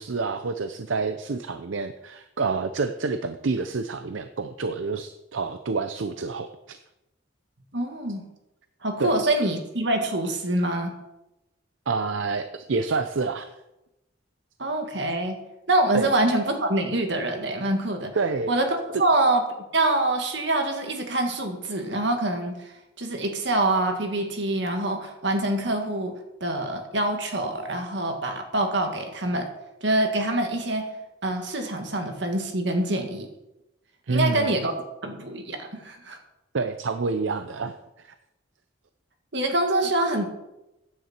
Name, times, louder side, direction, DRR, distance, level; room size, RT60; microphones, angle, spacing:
voice 1, 0.0-6.8 9.0-9.2 11.9-13.5 15.9-16.1 18.2-18.5 34.1-34.5 36.5-37.8 38.0-38.1, right 4 dB, 80° right, 10 dB, 0.6 m, -28 dB
voice 2, 7.7-8.2 8.8-10.9 14.6-15.4 15.7-18.2 18.5-19.4 19.7-26.1 26.4-29.4 29.8-30.9 31.2-33.3 34.1-34.7 35.0-36.2 39.3-40.2, right 1 dB, 60° right, 4 dB, 2.0 m, -25 dB
15.0 x 9.7 x 4.5 m, 0.94 s
head